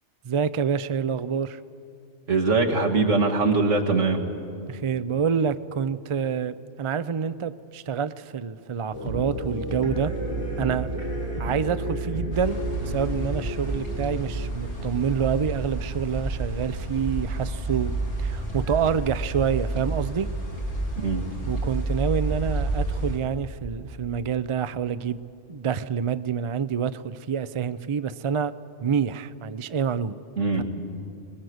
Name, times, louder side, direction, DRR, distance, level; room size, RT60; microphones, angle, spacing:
voice 1, 0.2-1.6 4.7-10.1 10.6-10.9 11.4-17.9 18.2-20.3 21.5-28.5 28.8-30.2 30.6-30.7, right 7 dB, 40° right, 14 dB, 0.4 m, -27 dB
voice 2, 2.3-4.2 21.0-21.3 30.4-30.6, right 3 dB, 80° right, 1 dB, 2.3 m, -22 dB
sound 1, 8.9-15.8, right 1 dB, 25° left, 4.6 m, -32 dB
sound 2, 12.3-23.2, right 2 dB, 45° left, 3.4 m, -30 dB
23.5 x 20.5 x 7.9 m, 2.4 s
omnidirectional pair, 1.2 m